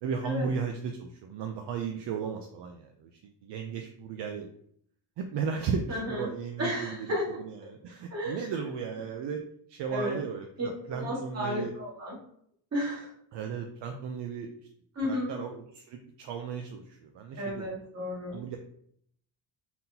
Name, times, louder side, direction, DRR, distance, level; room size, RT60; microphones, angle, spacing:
voice 1, 0.0-3.1 3.4-4.5 5.2-7.1 7.7-9.4 9.7-11.7 13.3-14.5 15.0-17.7 18.3-18.6, right 6 dB, 65° right, 4 dB, 0.5 m, -35 dB
voice 2, 5.9-6.3 6.6-7.2 8.1-8.5 9.9-10.2 10.6-12.2 12.7-13.1 15.0-15.3 17.3-18.4, equal, 35° right, -5 dB, 1.8 m, -33 dB
4.1 x 3.8 x 2.7 m, 0.66 s
cardioid pair, 170°, 45 cm